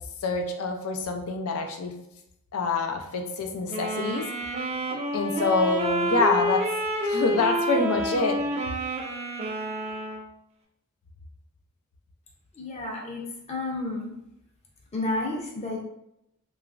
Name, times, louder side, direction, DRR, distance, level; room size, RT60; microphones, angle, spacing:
voice 1, 0.2-1.9 2.5-4.2 5.1-6.6 7.0-8.4, left 3 dB, 85° left, 4 dB, 0.5 m, -26 dB
sound 1, 3.7-10.3, right 1 dB, 30° right, 0.4 m, -28 dB
voice 2, 12.5-14.1 14.9-15.8, left 2 dB, 30° left, -1 dB, 0.6 m, -31 dB
2.9 x 2.4 x 2.4 m, 0.82 s
head